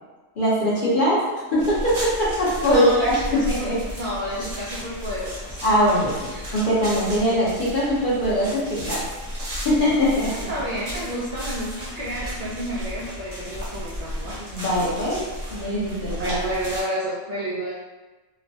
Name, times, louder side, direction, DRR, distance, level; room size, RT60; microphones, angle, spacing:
voice 1, 0.4-1.2 1.5-3.8 5.6-9.0 9.6-10.5 14.5-15.2 15.5-16.4, equal, 45° left, -8 dB, 0.8 m, -21 dB
sound 1, 1.6-16.8, equal, 45° right, 1.0 m, -34 dB
voice 2, 2.7-3.7 4.0-5.6 6.3-6.5 10.3-14.4 16.2-17.7, right 1 dB, 65° right, -7 dB, 0.4 m, -30 dB
3.0 x 2.1 x 2.6 m, 1.2 s
omnidirectional pair, 1.4 m